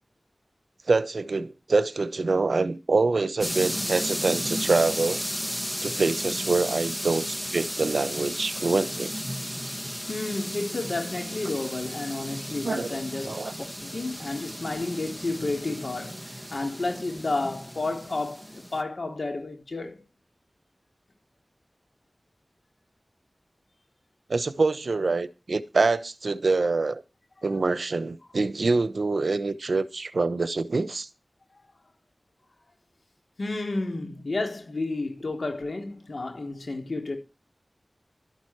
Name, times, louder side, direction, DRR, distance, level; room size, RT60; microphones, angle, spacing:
voice 1, 0.9-5.2 5.8-9.1 12.6-13.0 13.3-13.5 24.3-27.0 27.4-31.1, right 3 dB, 90° right, 0.9 m, -25 dB
sound 1, 3.4-18.8, equal, 5° left, 1.7 m, -34 dB
voice 2, 10.1-13.3 13.8-20.0 33.4-37.2, left 2 dB, 80° left, 3.8 m, -31 dB
12.5 x 11.0 x 4.6 m
wide cardioid pair, 40°, 0 cm